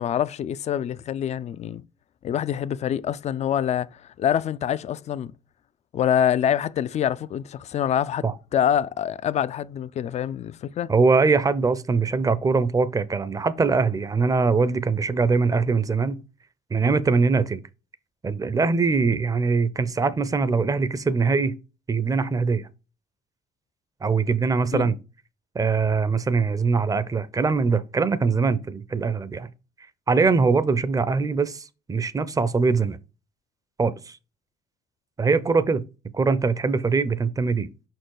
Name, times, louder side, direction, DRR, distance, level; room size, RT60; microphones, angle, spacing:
voice 1, 0.0-1.8 2.2-5.3 5.9-8.2 8.5-10.9 24.7-24.9, left 9 dB, 40° left, 0.4 m, -25 dB
voice 2, 10.9-16.2 16.7-17.6 18.2-21.6 21.9-22.7 24.0-25.0 25.5-29.5 30.1-33.0 33.8-34.2 35.2-35.8 36.1-37.7, right 4 dB, 20° right, 0.6 m, -22 dB
5.5 x 4.5 x 4.8 m
cardioid pair, 110°, 17 cm